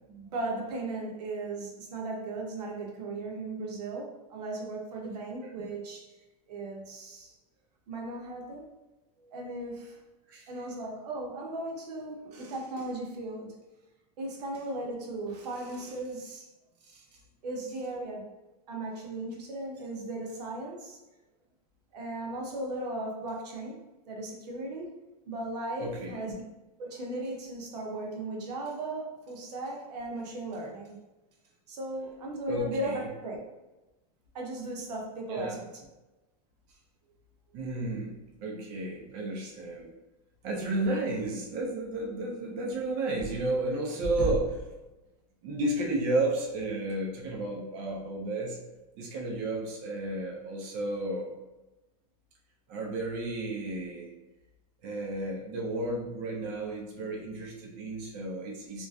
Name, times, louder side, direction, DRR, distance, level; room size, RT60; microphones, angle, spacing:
voice 1, 0.1-6.1 6.5-7.3 7.9-8.7 9.2-10.0 10.5-13.5 14.2-16.5 16.8-17.0 17.4-18.3 18.7-21.0 21.9-23.8 24.1-25.0 25.3-26.4 26.8-31.0 31.7-33.4 34.3-35.7, right 2 dB, 85° right, 0 dB, 0.7 m, -37 dB
voice 2, 25.8-26.2 32.5-33.1 35.3-35.6 37.5-39.9 40.4-44.6 45.4-48.6 49.0-51.3 52.7-54.1 54.8-58.9, right 2 dB, 40° right, -1 dB, 0.5 m, -32 dB
2.4 x 2.2 x 2.3 m, 1.1 s
supercardioid pair, 145°, 20 cm